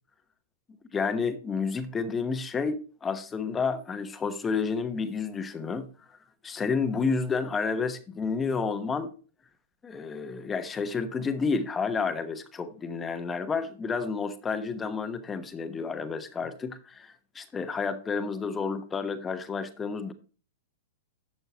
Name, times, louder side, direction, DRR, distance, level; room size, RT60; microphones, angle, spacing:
voice 1, 0.9-6.1 6.4-9.1 9.8-20.1, left 5 dB, 15° left, 8 dB, 1.1 m, -30 dB
11.5 x 8.0 x 2.9 m, 0.37 s
figure-of-eight pair, 105°, 0 cm